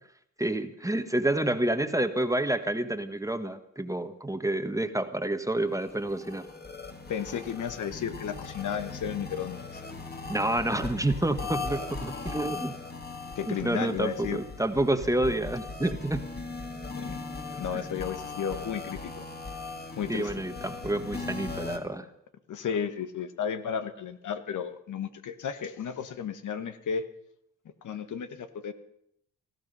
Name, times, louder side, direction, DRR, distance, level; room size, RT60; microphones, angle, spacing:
voice 1, 0.4-6.5 10.3-12.7 13.5-16.3 17.7-17.8 20.1-22.1, right 1 dB, 10° right, 9 dB, 1.5 m, -29 dB
sound 1, 5.8-21.8, left 4 dB, 30° left, 2.5 m, -39 dB
voice 2, 7.1-9.8 13.4-14.4 17.0-17.2 17.6-19.2 20.0-20.3 22.5-27.1 27.8-28.7, left 7 dB, 65° left, 10 dB, 1.3 m, -33 dB
18.5 x 14.0 x 5.5 m, 0.72 s
supercardioid pair, 60°, 33 cm